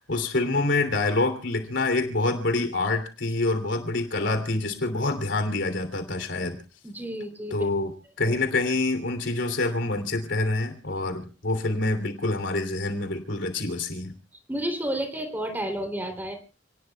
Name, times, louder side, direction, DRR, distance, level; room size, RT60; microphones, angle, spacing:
voice 1, 0.1-6.6 7.5-7.9 8.2-14.1, left 2 dB, 80° left, 7 dB, 3.1 m, -26 dB
voice 2, 6.8-7.6 14.5-16.3, right 1 dB, 10° right, 5 dB, 3.1 m, -31 dB
29.5 x 19.0 x 2.3 m, 0.33 s
head